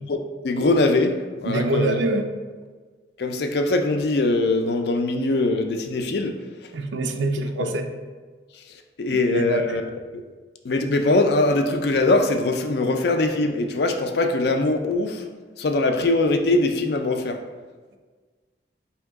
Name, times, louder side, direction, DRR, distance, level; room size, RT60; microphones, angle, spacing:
voice 1, 0.4-1.1 1.4-2.0 3.2-6.3 7.6-7.7 9.0-9.8 10.1-10.2 10.6-15.2 15.6-17.4, left 2 dB, 60° left, 5 dB, 0.4 m, -22 dB
voice 2, 1.4-2.3 6.7-7.9 9.1-9.8, right 2 dB, 85° right, 6 dB, 0.4 m, -25 dB
4.6 x 2.8 x 3.5 m, 1.4 s
head